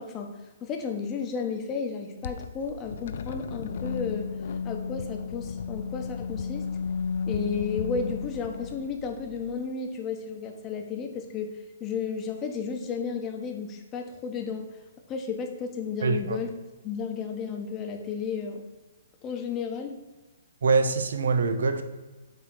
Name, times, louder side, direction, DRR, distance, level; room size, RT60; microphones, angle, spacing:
voice 1, 0.0-4.4 4.6-6.7 7.3-14.8 15.1-16.5 16.8-18.7 19.2-20.0, left 5 dB, 25° left, 3 dB, 1.1 m, -33 dB
sound 1, 2.2-9.6, left 6 dB, 60° left, 0.5 m, -33 dB
voice 2, 16.0-16.4 20.6-21.8, right 4 dB, 75° right, 8 dB, 0.9 m, -24 dB
8.0 x 3.1 x 6.0 m, 1.2 s
hypercardioid pair, 135°, 0 cm